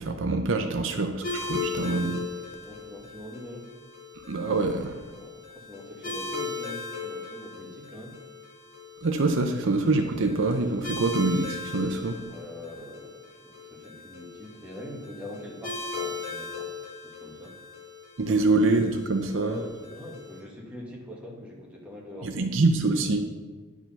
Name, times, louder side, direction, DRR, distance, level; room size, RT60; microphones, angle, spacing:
voice 1, 0.0-2.2 4.3-5.1 9.0-12.2 18.2-19.6 22.2-23.2, right 3 dB, 60° right, 5 dB, 0.6 m, -25 dB
sound 1, 1.2-20.4, left 4 dB, 45° left, 2.2 m, -38 dB
voice 2, 2.6-3.7 5.1-8.2 12.3-16.7 17.0-17.8 18.3-18.6 19.3-22.5, left 1 dB, 5° right, -4 dB, 1.7 m, -43 dB
10.5 x 4.8 x 5.6 m, 1.3 s
head